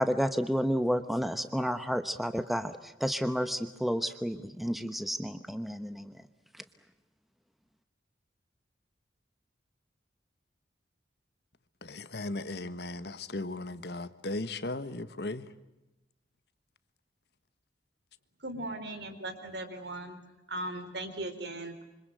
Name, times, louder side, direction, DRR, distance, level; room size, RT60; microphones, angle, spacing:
voice 1, 0.0-6.1, equal, ahead, 1.0 m, -31 dB
voice 2, 11.8-15.4, left 2 dB, 60° left, 1.4 m, -37 dB
voice 3, 18.4-20.2 20.5-21.8, right 1 dB, 70° right, 4.2 m, -38 dB
27.0 x 25.5 x 7.9 m
head